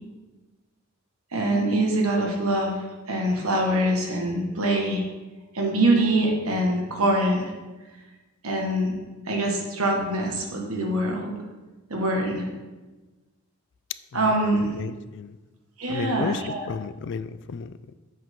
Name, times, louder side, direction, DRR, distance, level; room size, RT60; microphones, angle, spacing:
voice 1, 1.3-2.8 3.1-5.0 5.5-7.5 8.4-8.9 9.3-11.3 11.9-12.4 14.1-14.7 15.8-16.6, right 1 dB, 90° right, 0 dB, 1.7 m, -24 dB
voice 2, 14.7-15.4 15.9-17.9, left 5 dB, 55° left, 14 dB, 0.4 m, -33 dB
8.1 x 7.5 x 3.7 m, 1.2 s
head